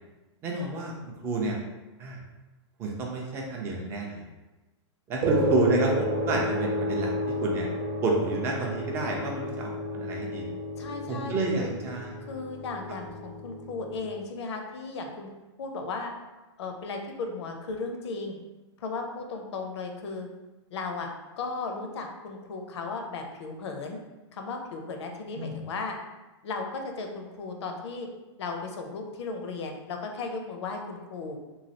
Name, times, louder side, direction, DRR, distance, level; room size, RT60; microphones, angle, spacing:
voice 1, 0.4-0.9 1.2-1.6 2.0-2.2 2.8-4.2 5.1-7.1 7.4-7.7 8.0-10.4 11.1-12.1 25.4-25.6, right 2 dB, 15° right, 0 dB, 0.4 m, -29 dB
sound 1, 5.2-14.0, equal, 45° right, 0.8 m, -31 dB
voice 2, 10.8-11.7 12.3-15.3 15.6-16.1 16.6-18.4 18.8-20.3 20.7-21.1 21.4-24.0 24.3-25.9 26.4-28.1 28.4-31.4, left 3 dB, 65° left, 3 dB, 0.6 m, -35 dB
3.1 x 2.3 x 2.7 m, 1.1 s
hypercardioid pair, 160°, 15 cm